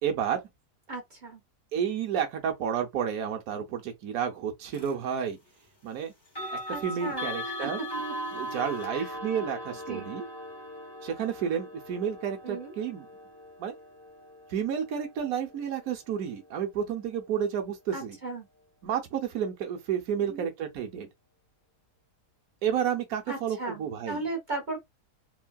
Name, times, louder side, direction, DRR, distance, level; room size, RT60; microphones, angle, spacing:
voice 1, 0.0-0.4 1.7-5.4 5.8-6.1 6.5-7.8 8.3-10.3 11.0-13.1 13.6-13.7 14.5-18.2 18.8-21.1 22.6-24.2, right 8 dB, 65° right, 1.2 m, -31 dB
voice 2, 0.9-1.4 6.7-7.9 8.9-9.1 9.9-10.1 12.4-12.7 17.9-18.5 20.2-20.5 23.3-24.8, right 3 dB, 35° right, 1.0 m, -36 dB
sound 1, 4.7-4.9 6.2-17.1, equal, 20° left, 0.8 m, -40 dB
3.6 x 2.2 x 2.3 m
omnidirectional pair, 1.7 m